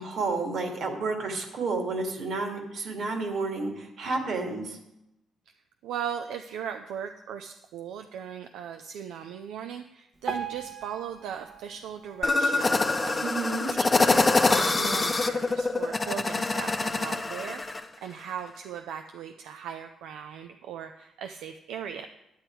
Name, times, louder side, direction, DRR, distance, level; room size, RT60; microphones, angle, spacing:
voice 1, 0.0-4.8 13.2-13.7, right 3 dB, 65° right, 3 dB, 2.2 m, -31 dB
voice 2, 5.8-17.6 18.0-22.1, right 8 dB, 85° right, 6 dB, 0.5 m, -38 dB
Piano, 10.3-13.4 13.9-14.0 14.3-14.4 15.2-15.3 15.8-15.9, right 5 dB, 25° right, 1.1 m, -40 dB
sound 1, 12.2-17.8, left 3 dB, 20° left, 0.7 m, -25 dB
9.7 x 9.4 x 4.6 m, 0.87 s
cardioid pair, 90°, 0 cm